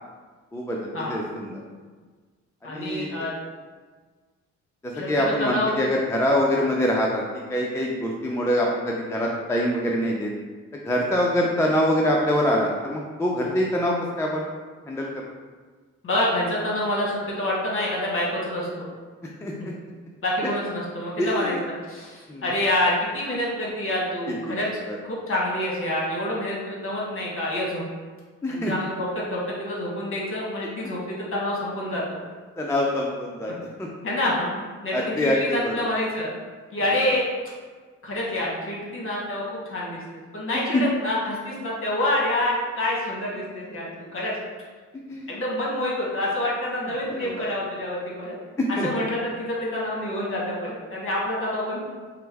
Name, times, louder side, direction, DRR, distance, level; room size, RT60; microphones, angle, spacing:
voice 1, 0.5-1.6 2.6-3.1 4.8-7.2 7.5-10.3 10.7-14.5 14.9-15.2 19.4-19.7 21.2-21.6 22.3-22.5 24.5-24.6 24.9-25.0 28.4-28.7 32.6-33.5 33.8-33.9 34.9-35.9 40.7-40.8 45.1-45.3 46.8-47.5 48.6-48.9, equal, 10° left, -2 dB, 0.3 m, -25 dB
voice 2, 2.6-3.3 4.9-5.7 16.0-18.9 20.2-21.5 21.9-24.7 25.0-27.8 28.5-32.2 34.0-34.5 34.8-36.3 36.7-37.2 38.0-40.0 40.3-44.3 45.3-48.4 48.8-51.8, left 1 dB, 45° left, -5 dB, 1.1 m, -27 dB
4.3 x 2.0 x 3.4 m, 1.4 s
cardioid pair, 90°, 30 cm